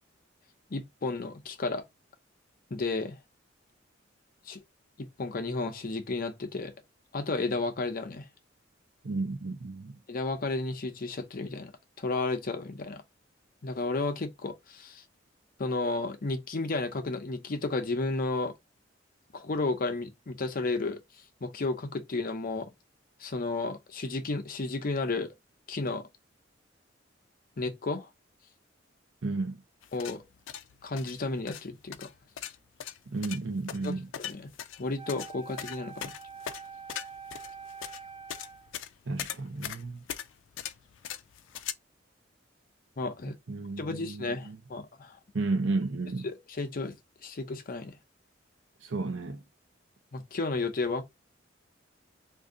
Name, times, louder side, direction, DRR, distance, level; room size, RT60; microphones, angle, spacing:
voice 1, 0.7-1.8 2.7-3.2 4.5-4.6 5.0-6.7 7.1-8.3 10.1-11.7 12.0-13.0 13.6-15.0 15.6-18.5 19.3-21.0 21.4-22.7 23.2-25.3 25.7-26.1 27.6-28.1 29.9-30.2 30.8-32.1 33.8-34.5 34.8-36.1 43.0-43.3 43.8-45.2 46.2-47.0 47.2-48.0 50.1-51.0, left 3 dB, 50° left, 0.7 m, -32 dB
voice 2, 9.0-10.0 29.2-29.6 33.1-34.1 39.1-40.0 43.5-44.6 45.3-46.3 48.8-49.4, right 3 dB, 85° right, 0.7 m, -33 dB
sound 1, 29.8-41.7, left 10 dB, 80° left, 0.4 m, -40 dB
Wind instrument woodwind instrument, 35.0-38.7, right 6 dB, 25° right, 0.6 m, -45 dB
2.6 x 2.6 x 3.7 m
head